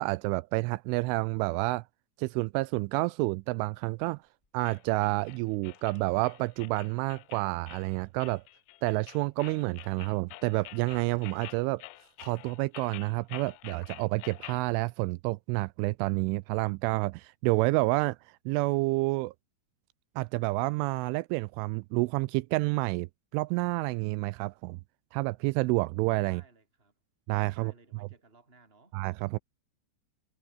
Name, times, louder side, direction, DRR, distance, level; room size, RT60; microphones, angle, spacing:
voice 1, 0.0-1.8 2.2-4.2 4.5-8.4 8.8-11.8 12.2-18.2 18.5-19.3 20.2-24.8 25.1-26.4 27.3-27.7 28.9-29.4, right 23 dB, 85° right, 2.9 m, -29 dB
sound 1, 3.3-4.6 4.9-6.5 6.8-7.8 8.2-9.0 9.4-9.5 10.3-11.7 12.7-12.8 13.2-13.8, left 2 dB, 30° left, 0.8 m, -63 dB
sound 2, 4.7-14.7, left 19 dB, 80° left, 3.0 m, -48 dB
voice 2, 26.2-26.9 27.5-29.0, right 3 dB, 10° right, 5.6 m, -59 dB
omnidirectional pair, 5.8 m